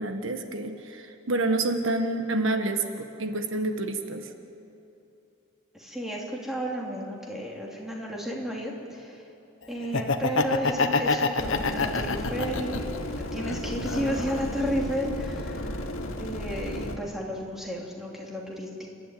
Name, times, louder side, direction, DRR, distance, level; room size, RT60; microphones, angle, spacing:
voice 1, 0.0-4.3, right 2 dB, 75° right, 6 dB, 1.5 m, -28 dB
voice 2, 5.7-9.3 9.7-18.9, equal, ahead, -3 dB, 3.0 m, -33 dB
Laughter, 9.8-13.0 13.4-14.5, left 3 dB, 70° left, 1.1 m, -26 dB
sound 1, 11.4-17.0, left 1 dB, 85° left, 2.3 m, -34 dB
30.0 x 12.5 x 9.3 m, 2.7 s
head